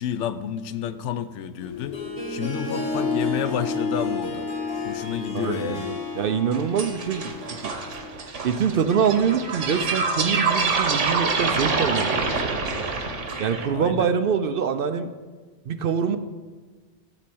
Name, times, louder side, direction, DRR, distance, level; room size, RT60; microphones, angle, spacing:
voice 1, 0.0-2.0 2.3-4.5 4.8-5.9 13.7-14.1, left 9 dB, 80° left, 13 dB, 0.9 m, -30 dB
Harp, 1.6-8.1, left 3 dB, 55° left, 1.9 m, -30 dB
voice 2, 5.3-7.3 7.6-7.7 8.4-12.4 13.4-15.1 15.7-16.2, right 7 dB, 60° right, 9 dB, 0.7 m, -24 dB
sound 1, 6.5-13.7, right 4 dB, 90° right, 1.5 m, -26 dB
12.0 x 4.3 x 7.7 m, 1.4 s
omnidirectional pair, 1.2 m